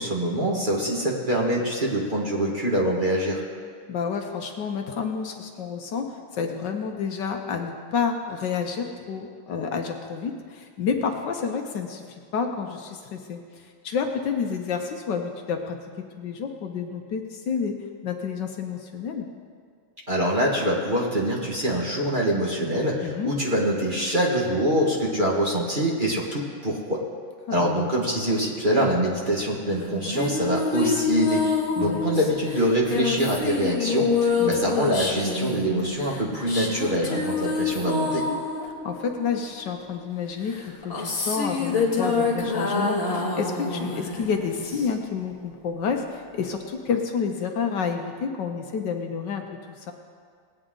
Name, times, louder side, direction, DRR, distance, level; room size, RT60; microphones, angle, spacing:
voice 1, 0.0-3.4 20.1-27.0 27.5-31.4 31.8-38.2, right 1 dB, 25° right, -4 dB, 1.6 m, -24 dB
voice 2, 3.9-12.0 12.3-15.8 16.2-19.3 23.0-23.3 27.5-28.1 31.8-32.1 34.4-34.7 38.8-49.4 49.8-49.9, left 6 dB, 65° left, 4 dB, 1.4 m, -29 dB
sound 1, 29.8-39.7 40.5-45.2, left 4 dB, 35° left, 1.8 m, -27 dB
19.5 x 9.0 x 3.8 m, 2.1 s
omnidirectional pair, 2.1 m